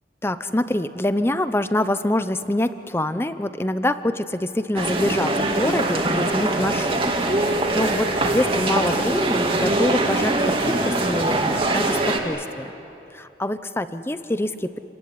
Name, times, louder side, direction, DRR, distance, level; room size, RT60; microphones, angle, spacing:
voice 1, 0.2-7.0 7.4-12.7 13.1-14.8, left 1 dB, 15° left, 12 dB, 0.7 m, -25 dB
sound 1, 4.8-12.2, right 2 dB, 30° right, 2.3 m, -22 dB
28.5 x 19.0 x 9.8 m, 2.9 s
head